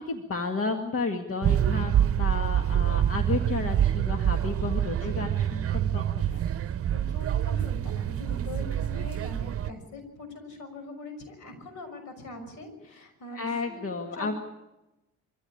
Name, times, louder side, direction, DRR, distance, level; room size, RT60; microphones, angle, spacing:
voice 1, 0.0-6.4 13.3-14.3, left 4 dB, 45° left, 4 dB, 2.0 m, -32 dB
sound 1, 1.4-9.7, right 10 dB, 50° right, 0.9 m, -26 dB
voice 2, 6.2-6.6 6.9-13.8 14.2-14.4, left 2 dB, 75° left, 7 dB, 6.3 m, -42 dB
24.0 x 16.0 x 8.7 m, 0.98 s
cardioid pair, 90°, 30 cm